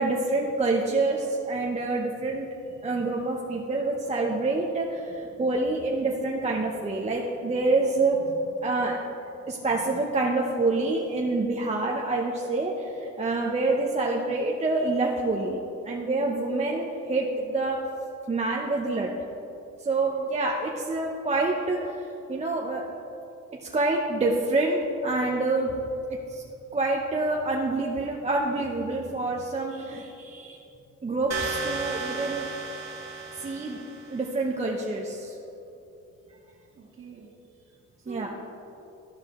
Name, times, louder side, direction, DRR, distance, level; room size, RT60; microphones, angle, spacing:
voice 1, 0.0-2.5 2.8-9.0 9.5-15.6 15.8-17.8 18.3-19.1 19.8-22.0 22.3-22.8 23.7-25.8 26.3-26.4 26.7-30.6 31.0-32.5 33.4-33.8 34.1-35.4 38.1-38.3, right 2 dB, 20° right, -1 dB, 0.7 m, -27 dB
sound 1, 31.3-34.2, right 4 dB, 60° right, 1.1 m, -34 dB
voice 2, 36.7-37.3 37.7-38.3, right 5 dB, 45° right, 0 dB, 1.6 m, -45 dB
13.0 x 4.8 x 3.6 m, 2.8 s
cardioid pair, 90°, 30 cm